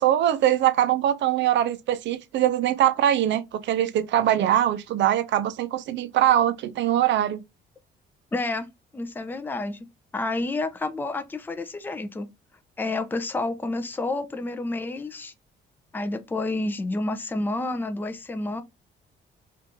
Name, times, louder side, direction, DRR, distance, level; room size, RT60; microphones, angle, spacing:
voice 1, 0.0-7.4, right 11 dB, 65° right, 0.5 m, -22 dB
voice 2, 8.3-9.8 10.1-12.3 12.8-15.3 15.9-18.6, left 2 dB, 10° left, 0.4 m, -29 dB
2.7 x 2.4 x 3.5 m
cardioid pair, 90°, 20 cm